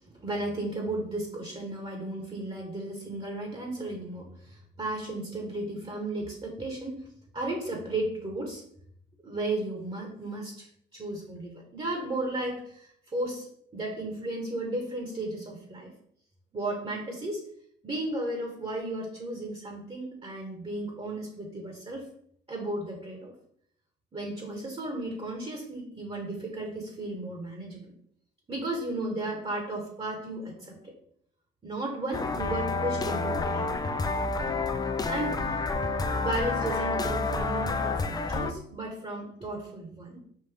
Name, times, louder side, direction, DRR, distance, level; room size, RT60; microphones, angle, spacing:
voice 1, 0.1-7.0 7.3-8.6 9.2-15.9 16.5-17.4 17.8-22.1 22.5-23.3 24.1-27.9 28.5-30.9 31.6-33.8 35.1-40.2, right 2 dB, 30° right, 0 dB, 1.2 m, -34 dB
sound 1, 32.1-38.5, left 3 dB, 20° left, 0.4 m, -29 dB
5.5 x 2.5 x 3.5 m, 0.65 s
cardioid pair, 90°, 20 cm